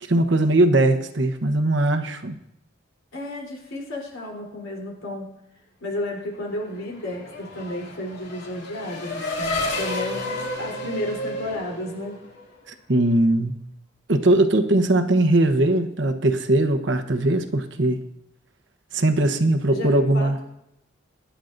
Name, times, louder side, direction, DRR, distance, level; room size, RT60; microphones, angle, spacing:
voice 1, 0.0-2.4 12.7-13.6 14.1-18.0 18.9-20.4, right 1 dB, 65° right, 7 dB, 1.0 m, -20 dB
voice 2, 3.1-5.4 5.8-12.3 19.7-20.4, left 1 dB, 80° left, -2 dB, 3.7 m, -32 dB
Race car auto racing / Accelerating revving vroom, 6.5-12.6, left 2 dB, 55° left, 2.6 m, -31 dB
23.5 x 10.0 x 2.6 m, 0.82 s
head